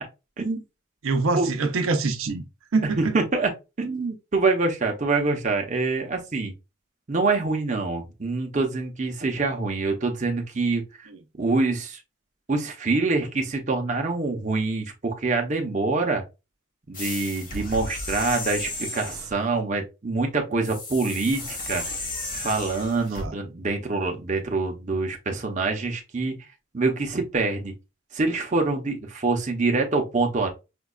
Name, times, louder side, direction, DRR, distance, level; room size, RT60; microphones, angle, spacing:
voice 1, 1.0-2.4 2.7-3.2 11.1-11.2 23.2-23.3, right 3 dB, 75° right, 0.6 m, -24 dB
voice 2, 3.0-3.5 3.8-6.5 7.1-10.8 11.4-12.0 12.5-16.2 16.9-21.8 22.3-26.3 26.7-27.7 28.1-30.5, right 3 dB, 35° right, 0.6 m, -25 dB
sound 1, 16.9-19.4 20.6-23.3, left 2 dB, 40° left, 1.1 m, -34 dB
5.1 x 2.2 x 2.3 m
head